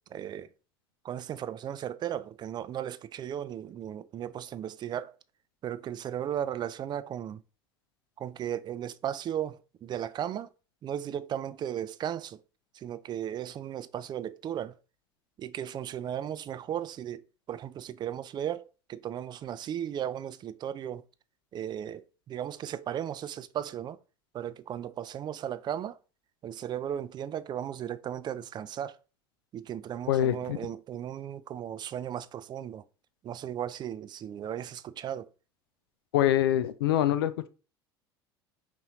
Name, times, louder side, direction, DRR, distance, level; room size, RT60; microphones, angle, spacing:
voice 1, 0.1-0.5 1.0-5.1 5.6-7.4 8.2-10.5 10.8-12.4 12.8-14.7 15.4-17.2 17.5-21.0 21.5-24.0 24.3-26.0 26.4-29.0 29.5-32.8 33.2-35.3, right 10 dB, 35° right, 0.4 m, -36 dB
voice 2, 30.1-30.6 36.1-37.5, left 12 dB, 80° left, 0.4 m, -25 dB
5.4 x 2.6 x 2.9 m
hypercardioid pair, 75°, 12 cm